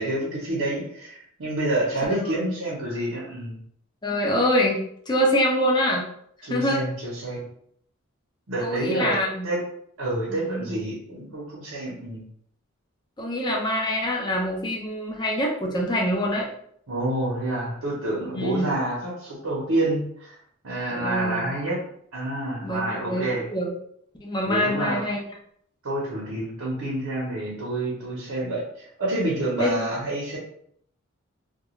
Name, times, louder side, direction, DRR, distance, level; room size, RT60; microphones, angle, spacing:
voice 1, 0.0-3.6 6.4-7.4 8.5-9.2 9.4-9.6 10.0-12.2 16.9-20.4 20.6-21.8 22.1-23.4 24.4-25.0 25.8-30.4, right 1 dB, 90° right, -7 dB, 0.8 m, -28 dB
voice 2, 2.2-2.5 4.0-6.0 6.5-6.8 8.6-9.5 10.3-10.7 13.2-16.5 18.3-18.7 20.9-21.5 22.6-23.7 24.2-25.2 29.5-29.9, equal, 20° left, -2 dB, 0.5 m, -25 dB
2.3 x 2.2 x 3.0 m, 0.67 s
head